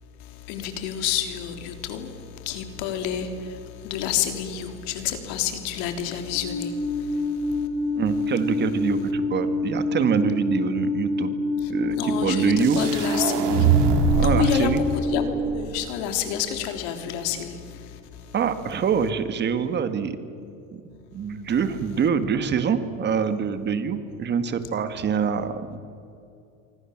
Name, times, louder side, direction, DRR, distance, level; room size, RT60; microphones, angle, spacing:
voice 1, 0.5-2.1 2.5-3.3 3.8-6.7 11.9-13.6 14.1-14.8 15.1-17.6, left 9 dB, 85° left, 6 dB, 3.6 m, -29 dB
Alarm, 6.3-15.3, left 2 dB, 55° left, 5.3 m, -27 dB
voice 2, 8.0-11.3 11.7-12.8 14.2-14.8 18.3-20.2 20.7-20.8 21.1-25.8, right 7 dB, 35° right, 10 dB, 2.0 m, -25 dB
sound 1, 12.6-14.5, right 6 dB, 90° right, 3.4 m, -22 dB
27.5 x 24.5 x 7.4 m, 2.7 s
cardioid pair, 135°, 30 cm